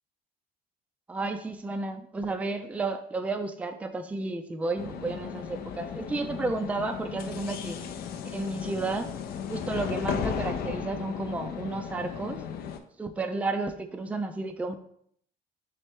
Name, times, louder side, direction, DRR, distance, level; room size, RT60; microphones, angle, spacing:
voice 1, 1.1-7.8 8.2-9.1 9.5-12.4 13.0-14.8, right 3 dB, 10° right, 7 dB, 0.3 m, -32 dB
sound 1, 4.8-12.8, left 7 dB, 65° left, 0.5 m, -35 dB
3.3 x 3.2 x 4.5 m, 0.65 s
cardioid pair, 110°, 17 cm